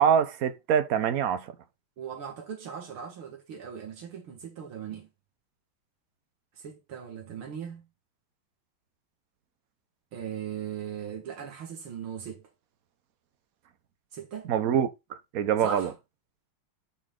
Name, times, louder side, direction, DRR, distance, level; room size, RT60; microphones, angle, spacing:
voice 1, 0.0-1.5 14.5-14.9 15.3-15.9, right 8 dB, 55° right, 1.0 m, -24 dB
voice 2, 2.0-5.1 6.6-7.8 10.1-12.5 14.1-14.5 15.6-15.9, right 7 dB, 80° right, 2.5 m, -38 dB
8.5 x 4.3 x 3.7 m
omnidirectional pair, 2.3 m